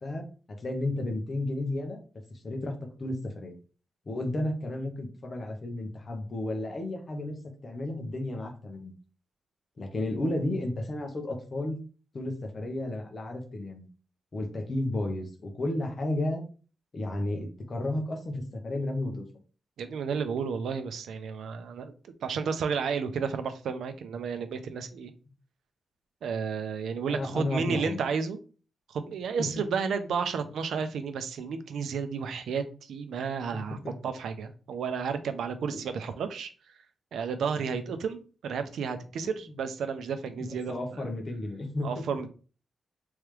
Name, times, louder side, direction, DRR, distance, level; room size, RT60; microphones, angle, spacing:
voice 1, 0.0-2.0 2.3-2.7 3.0-3.6 4.1-7.4 7.6-8.9 9.8-11.8 12.1-13.9 14.3-16.4 16.9-19.3 27.1-28.1 29.4-29.5 33.5-34.0 35.7-35.8 40.4-42.0, left 1 dB, 30° left, 4 dB, 0.8 m, -33 dB
voice 2, 19.8-21.9 22.2-25.1 26.2-28.4 28.9-33.8 34.0-36.5 37.1-41.0 41.8-42.3, right 6 dB, 80° right, 9 dB, 0.5 m, -32 dB
3.5 x 3.2 x 3.2 m, 0.37 s
wide cardioid pair, 175°, 0 cm